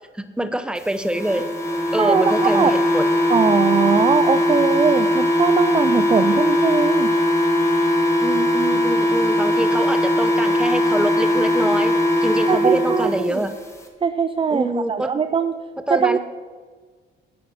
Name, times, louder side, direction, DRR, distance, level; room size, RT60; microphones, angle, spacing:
voice 1, 0.1-1.5 1.9-3.1 8.2-13.5 14.5-15.1 15.9-16.2, right 1 dB, 5° right, 10 dB, 0.9 m, -25 dB
sound 1, 1.1-13.2, left 1 dB, 15° left, 2.0 m, -19 dB
voice 2, 2.0-2.7 3.3-7.1 12.5-13.4 14.0-15.5 15.9-16.2, right 6 dB, 25° right, 10 dB, 0.5 m, -20 dB
10.5 x 9.0 x 5.9 m, 1.4 s
cardioid pair, 90°, 20 cm